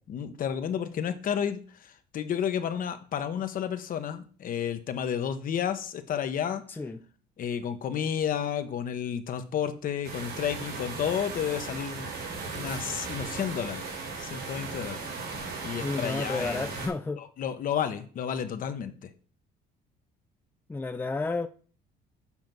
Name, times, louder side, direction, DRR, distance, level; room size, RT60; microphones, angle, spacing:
voice 1, 0.1-6.6 7.4-12.1 12.5-13.8 14.2-15.0 15.6-16.7 17.2-19.1, left 8 dB, 55° left, 1.1 m, -31 dB
voice 2, 6.7-7.0 15.8-17.2 20.7-21.5, left 3 dB, 10° left, 0.5 m, -31 dB
sound 1, 10.0-16.9, right 4 dB, 85° right, 4.6 m, -37 dB
7.3 x 5.3 x 6.1 m
cardioid pair, 110°, 17 cm